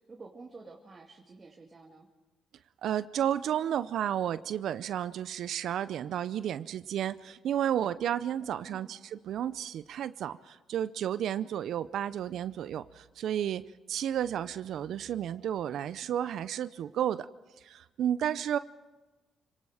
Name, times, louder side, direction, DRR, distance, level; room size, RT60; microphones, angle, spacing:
voice 1, 0.0-2.1 8.6-9.1, right 3 dB, 30° right, 0 dB, 2.3 m, -50 dB
voice 2, 2.8-17.3 17.6-18.6, right 10 dB, 75° right, 14 dB, 0.6 m, -32 dB
28.0 x 19.0 x 5.0 m, 1.2 s
cardioid pair, 90°, 0 cm